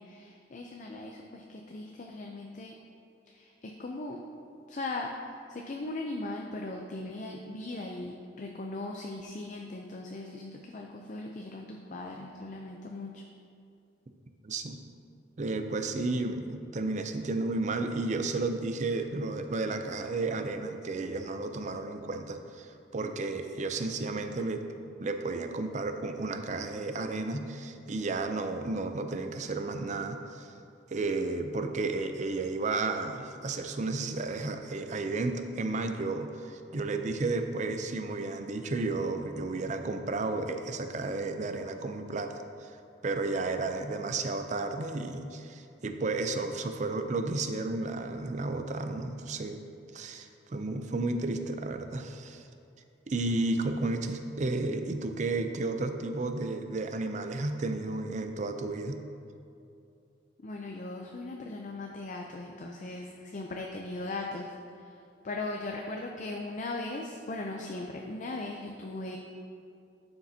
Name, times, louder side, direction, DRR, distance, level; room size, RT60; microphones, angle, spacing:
voice 1, 0.0-2.8 3.3-4.2 4.7-13.2 60.4-64.9 65.2-69.2, left 2 dB, 40° left, 1 dB, 0.5 m, -39 dB
voice 2, 14.4-14.8 15.4-24.7 25.0-30.5 30.9-42.3 42.6-42.7 43.0-49.6 49.9-52.4 53.1-59.0, right 3 dB, 40° right, 7 dB, 0.5 m, -32 dB
11.5 x 6.7 x 2.8 m, 2.6 s
head